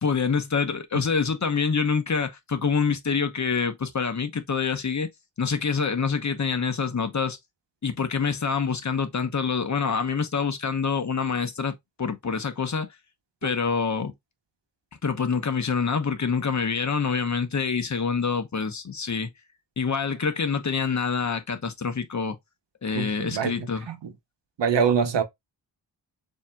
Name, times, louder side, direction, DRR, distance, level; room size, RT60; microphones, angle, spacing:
voice 1, 0.0-5.1 5.4-7.4 7.8-12.9 13.4-14.1 15.0-19.3 19.8-22.4 22.8-23.9, left 5 dB, 40° left, 0.9 m, -26 dB
voice 2, 22.9-24.1 24.6-25.2, right 6 dB, 90° right, 1.0 m, -25 dB
7.0 x 2.8 x 2.3 m
wide cardioid pair, 105°, 42 cm